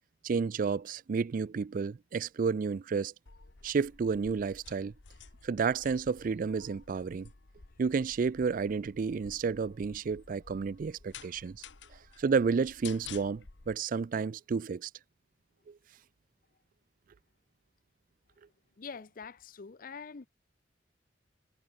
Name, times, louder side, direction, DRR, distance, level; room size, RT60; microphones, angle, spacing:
voice 1, 0.2-3.1 3.6-4.9 5.4-7.3 7.8-11.6 12.2-14.9 15.7-15.8, right 5 dB, 50° right, 0.4 m, -31 dB
sound 1, 3.3-13.8, left 6 dB, 75° left, 1.3 m, -52 dB
voice 2, 18.8-20.3, left 5 dB, 50° left, 0.6 m, -44 dB
head